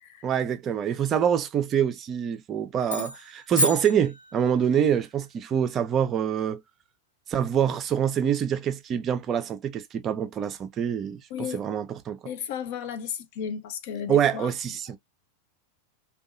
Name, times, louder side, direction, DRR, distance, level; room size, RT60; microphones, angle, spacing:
voice 1, 0.2-6.6 7.3-12.2 14.1-15.0, right 9 dB, 30° right, 0.4 m, -25 dB
sound 1, 2.8-4.8, left 1 dB, 75° left, 1.0 m, -30 dB
voice 2, 11.3-11.6 12.2-14.5, left 8 dB, 50° left, 0.6 m, -34 dB
2.7 x 2.3 x 2.4 m
figure-of-eight pair, 90°, 0 cm